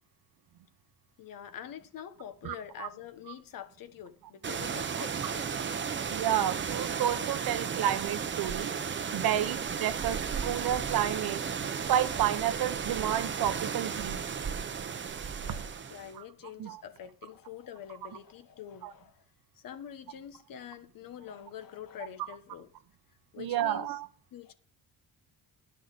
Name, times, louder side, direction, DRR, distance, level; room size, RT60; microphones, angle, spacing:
voice 1, 1.2-5.5 15.4-19.2 19.5-22.7 23.3-24.0 24.3-24.5, left 9 dB, 65° left, 1.3 m, -45 dB
voice 2, 2.4-2.9 6.1-8.8 9.1-10.2 10.4-11.4 11.9-14.2 16.2-16.3 16.6-16.8 18.8-18.9 23.4-24.1, right 11 dB, 75° right, 1.1 m, -30 dB
sound 1, 4.4-16.1, right 6 dB, 30° right, 0.8 m, -34 dB
10.5 x 6.5 x 6.7 m
cardioid pair, 140°, 36 cm